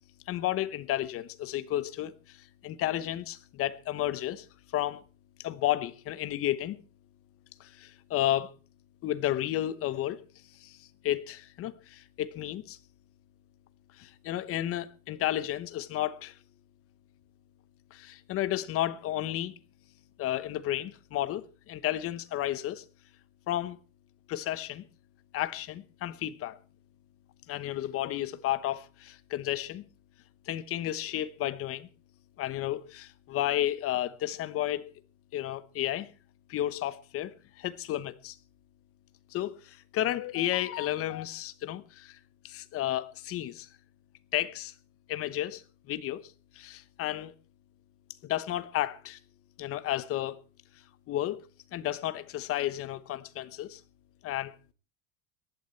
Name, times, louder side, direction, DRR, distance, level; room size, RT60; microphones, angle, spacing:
voice 1, 0.3-4.5 4.7-5.0 5.4-6.8 7.6-8.5 9.0-10.2 10.6-12.8 14.0-16.3 17.9-19.5 20.2-22.9 23.5-23.8 24.3-24.8 25.3-26.6 27.5-29.8 30.5-31.9 32.4-34.9 35.3-36.1 36.5-38.4 39.3-42.2 42.4-43.7 44.3-44.7 45.1-47.3 48.2-49.2 49.6-50.4 51.1-51.4 51.7-53.8 54.2-54.5, left 13 dB, 40° left, 1.0 m, -32 dB
18.5 x 12.0 x 4.5 m
cardioid pair, 160°, 36 cm